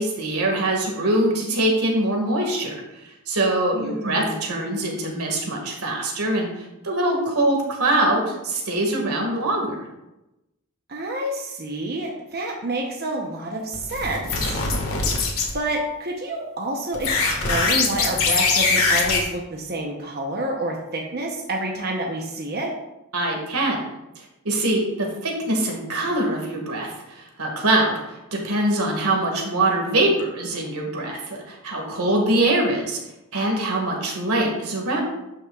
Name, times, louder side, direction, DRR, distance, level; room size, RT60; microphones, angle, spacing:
voice 1, 0.0-9.8 23.1-23.8 24.4-33.0 33.3-35.0, right 1 dB, 90° right, 0 dB, 2.0 m, -23 dB
voice 2, 3.7-4.5 10.9-14.6 15.5-22.7, right 1 dB, 45° right, 0 dB, 0.9 m, -28 dB
sound 1, 13.7-15.5 16.9-19.2, left 4 dB, 75° left, 1.7 m, -22 dB
12.5 x 5.9 x 2.4 m, 0.95 s
head